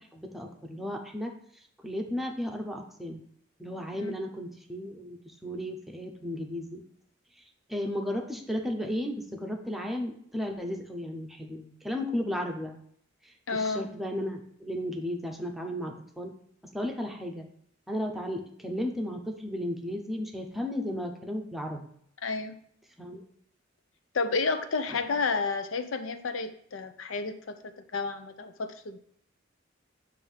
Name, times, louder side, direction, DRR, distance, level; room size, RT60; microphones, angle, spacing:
voice 1, 0.1-1.3 1.8-3.2 3.6-6.8 7.7-12.8 13.2-16.3 16.6-17.5 17.9-21.9 23.0-23.2, left 1 dB, ahead, 1 dB, 0.7 m, -34 dB
voice 2, 13.5-13.9 22.2-22.6 24.1-29.0, left 4 dB, 80° left, 9 dB, 0.6 m, -31 dB
7.6 x 2.7 x 5.6 m, 0.64 s
head